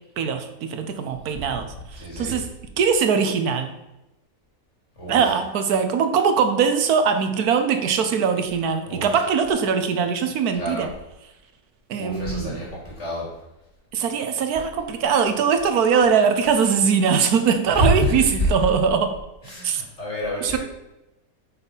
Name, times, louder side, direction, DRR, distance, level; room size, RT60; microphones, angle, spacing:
voice 1, 0.2-1.7 1.9-2.5 2.8-3.7 5.1-10.9 11.9-12.6 13.9-19.1 19.6-19.8 20.4-20.6, right 6 dB, 85° right, 8 dB, 1.4 m, -21 dB
voice 2, 1.2-1.6 1.9-2.4 5.0-5.2 8.8-9.1 10.5-10.9 12.0-13.3 17.7-18.1 19.4-20.6, right 1 dB, 50° left, -4 dB, 3.3 m, -27 dB
8.9 x 6.2 x 4.0 m, 0.94 s
omnidirectional pair, 1.6 m